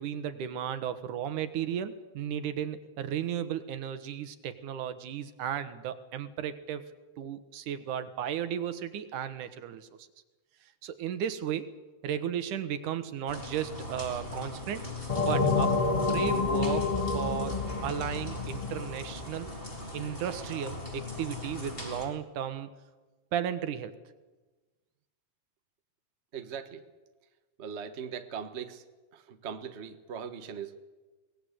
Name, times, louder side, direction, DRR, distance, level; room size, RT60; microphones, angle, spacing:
voice 1, 0.0-6.9 7.2-9.9 10.8-11.7 12.0-14.9 15.2-15.8 16.1-19.5 19.9-22.7 23.3-23.9, right 9 dB, 80° right, 11 dB, 2.8 m, -34 dB
sound 1, 13.3-22.1, left 2 dB, 15° left, 4.4 m, -40 dB
sound 2, 15.1-19.5, left 4 dB, 55° left, 0.4 m, -28 dB
voice 2, 26.3-26.8 27.6-28.8 29.1-30.7, right 7 dB, 55° right, 8 dB, 0.7 m, -40 dB
23.5 x 19.0 x 8.2 m, 1.2 s
omnidirectional pair, 3.6 m